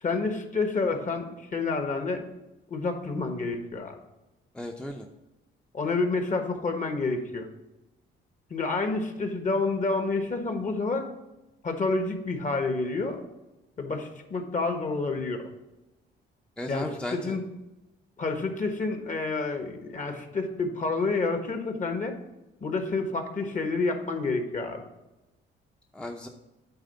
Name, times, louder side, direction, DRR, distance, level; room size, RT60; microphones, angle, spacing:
voice 1, 0.0-2.2 2.7-3.9 5.7-7.5 8.5-11.1 11.6-13.3 13.8-15.5 16.7-17.4 18.2-22.1 22.6-24.8, left 3 dB, 40° left, 5 dB, 1.4 m, -29 dB
voice 2, 4.5-5.1 16.6-17.4 25.9-26.3, left 1 dB, 5° left, 2 dB, 0.6 m, -35 dB
8.8 x 3.5 x 6.7 m, 0.99 s
cardioid pair, 90°, 20 cm